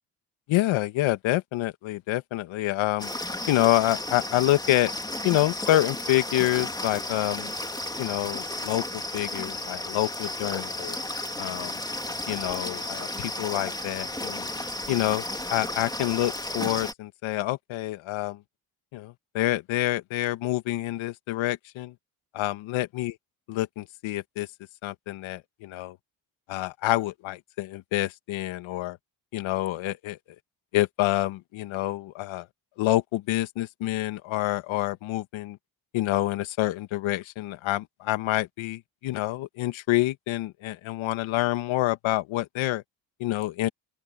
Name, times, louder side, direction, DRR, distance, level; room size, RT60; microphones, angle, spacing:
voice 1, 0.5-3.1 3.5-4.9 5.2-7.5 8.0-8.8 9.1-11.0 11.4-11.8 12.3-14.5 14.9-18.4 18.9-21.9 22.3-23.1 23.5-24.5 24.8-26.0 26.5-29.0 29.3-30.2 30.7-32.5 32.8-35.6 35.9-42.8 43.2-43.7, left 16 dB, 75° left, 1.7 m, -27 dB
sound 1, 3.0-16.9, left 1 dB, 10° left, 2.7 m, -33 dB
open air
supercardioid pair, 55°, 47 cm